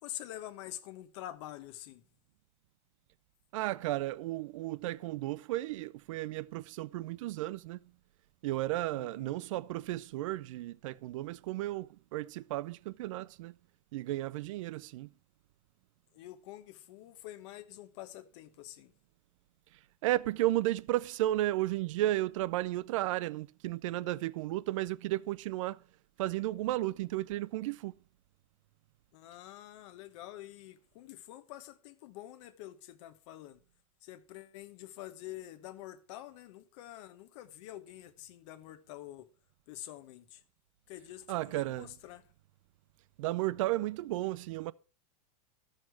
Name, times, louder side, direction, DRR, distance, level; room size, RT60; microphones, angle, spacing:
voice 1, 0.0-2.0 8.9-9.4 16.1-18.9 29.1-33.6 34.0-39.3 39.7-40.4 40.9-42.2, left 14 dB, 50° left, 1.1 m, -47 dB
voice 2, 3.5-7.8 8.4-13.5 13.9-15.1 20.0-25.8 26.2-27.9 41.3-41.9 43.2-44.7, right 16 dB, 55° right, 0.4 m, -33 dB
13.0 x 6.6 x 4.6 m
supercardioid pair, 160°, 19 cm